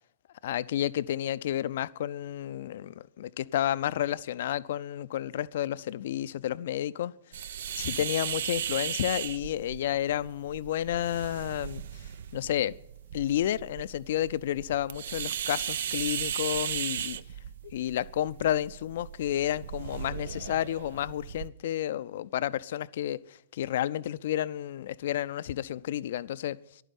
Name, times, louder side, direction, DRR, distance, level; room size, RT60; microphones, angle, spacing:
voice 1, 0.4-7.1 7.8-11.8 12.3-12.8 13.1-17.2 17.6-26.6, left 12 dB, 55° left, 0.5 m, -31 dB
sound 1, 7.3-21.5, right 9 dB, 60° right, 0.5 m, -37 dB
11.5 x 9.3 x 9.9 m
figure-of-eight pair, 110°, 0 cm